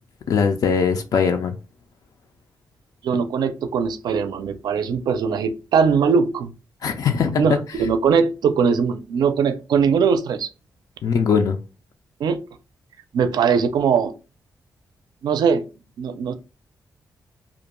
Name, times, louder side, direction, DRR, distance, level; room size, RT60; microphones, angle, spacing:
voice 1, 0.3-1.5 6.8-7.6 11.0-11.6, left 6 dB, 60° left, 0.3 m, -20 dB
voice 2, 3.0-6.5 7.4-10.5 12.2-12.4 13.1-14.1 15.2-15.7 16.0-16.3, right 6 dB, 80° right, 0.4 m, -20 dB
2.4 x 2.2 x 2.9 m
wide cardioid pair, 125°, 7 cm